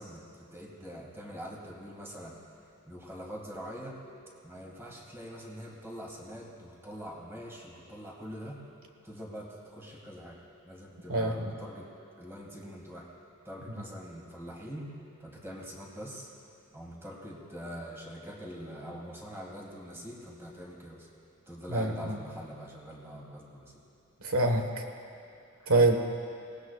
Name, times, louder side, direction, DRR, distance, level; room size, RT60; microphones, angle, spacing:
voice 1, 0.0-2.4 2.9-4.0 4.4-8.6 9.0-11.9 12.2-13.1 13.4-14.9 15.2-16.3 16.7-21.1 21.5-23.8, equal, 10° right, -2 dB, 2.2 m, -44 dB
voice 2, 11.1-11.5 21.7-22.2 24.2-24.8 25.7-25.9, right 2 dB, 75° right, 4 dB, 1.5 m, -25 dB
24.0 x 18.5 x 2.4 m, 2.5 s
head